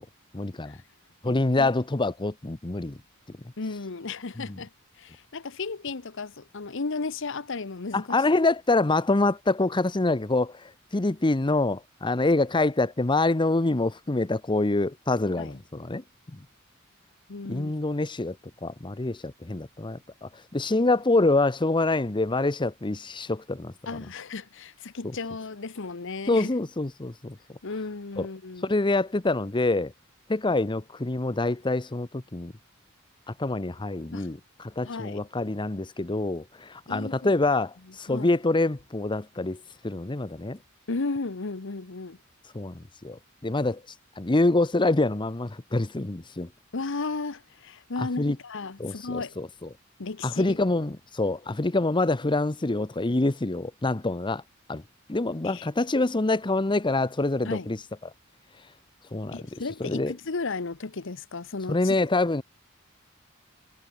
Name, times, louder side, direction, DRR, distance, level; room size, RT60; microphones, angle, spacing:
voice 1, 0.3-0.8 1.2-3.0 4.4-4.6 7.9-16.0 16.3-16.4 17.4-18.4 18.6-23.7 25.0-25.1 26.3-27.4 28.2-28.3 28.6-29.9 30.3-32.5 33.4-40.6 42.5-43.8 44.2-46.5 48.0-48.4 48.8-49.7 50.2-54.4 54.7-54.8 55.1-57.8 59.1-60.1 61.7-62.4, left 2 dB, 25° left, 0.8 m, -26 dB
voice 2, 1.2-1.7 3.6-4.7 5.0-8.1 15.4-15.6 17.3-17.7 23.9-26.5 27.6-28.7 34.1-34.3 34.8-35.2 36.9-37.3 38.1-38.3 40.9-42.2 46.7-49.4 50.0-50.6 55.4-55.7 57.4-57.7 59.3-62.0, left 3 dB, 65° left, 1.0 m, -34 dB
head